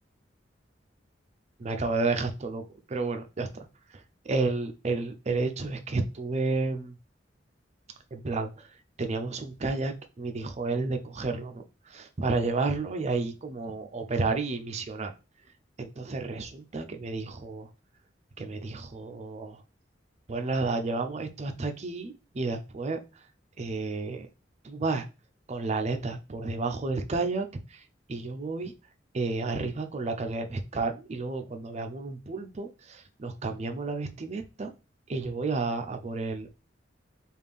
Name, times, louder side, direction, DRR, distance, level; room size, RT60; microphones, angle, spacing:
voice 1, 1.6-3.5 4.3-6.9 8.1-8.7 9.0-11.6 11.9-15.1 15.8-17.7 18.4-19.6 20.3-23.0 23.6-24.3 24.6-25.1 25.5-27.8 28.1-28.7 29.1-34.7 35.1-36.5, right 3 dB, 40° right, 7 dB, 0.5 m, -31 dB
3.5 x 2.4 x 3.4 m, 0.30 s
head